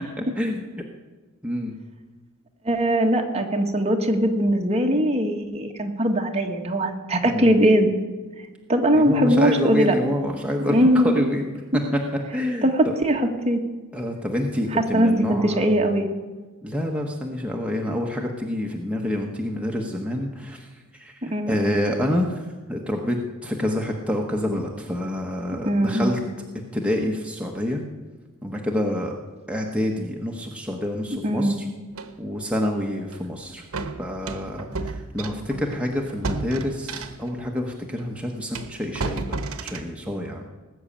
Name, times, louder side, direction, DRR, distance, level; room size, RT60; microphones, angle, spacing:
voice 1, 0.2-0.6 1.4-1.7 7.2-7.5 8.9-11.4 12.3-12.7 13.9-15.7 16.6-20.7 21.0-26.2 26.7-27.8 28.4-29.1 29.5-31.7 32.2-33.6 34.0-40.5, left 1 dB, 5° right, 0 dB, 1.1 m, -27 dB
voice 2, 2.6-7.9 8.7-9.9 10.7-11.2 12.6-13.6 14.7-16.1 21.3-21.6 25.6-26.2 31.2-31.6, equal, 30° right, 3 dB, 1.5 m, -20 dB
sound 1, 32.0-32.1 33.1-33.3 33.7-37.4 38.0-38.1 38.5-39.9, right 3 dB, 70° right, 1.1 m, -32 dB
19.0 x 6.4 x 8.5 m, 1.3 s
head